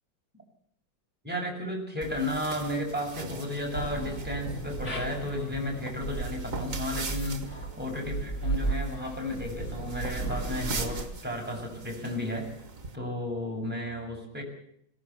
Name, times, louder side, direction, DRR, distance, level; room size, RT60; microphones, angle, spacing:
voice 1, 1.2-12.5 12.9-14.4, left 1 dB, 5° right, -1 dB, 6.8 m, -33 dB
sound 1, 2.0-13.0, right 3 dB, 50° right, 2.3 m, -42 dB
sound 2, 3.7-11.0, right 3 dB, 40° left, 3.4 m, -35 dB
21.5 x 18.5 x 7.0 m, 0.69 s
omnidirectional pair, 1.9 m